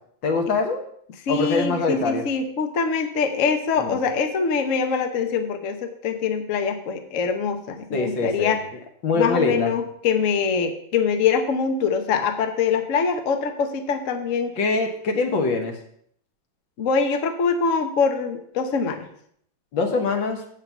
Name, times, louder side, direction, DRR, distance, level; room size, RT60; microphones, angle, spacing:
voice 1, 0.2-0.8 1.3-2.2 3.8-4.0 7.9-8.6 9.0-9.7 14.6-15.7 19.7-20.4, left 3 dB, 75° left, 4 dB, 2.0 m, -23 dB
voice 2, 1.3-8.6 9.1-14.5 16.8-19.1, left 5 dB, 50° left, 6 dB, 1.0 m, -24 dB
7.6 x 6.0 x 7.0 m, 0.66 s
omnidirectional pair, 2.1 m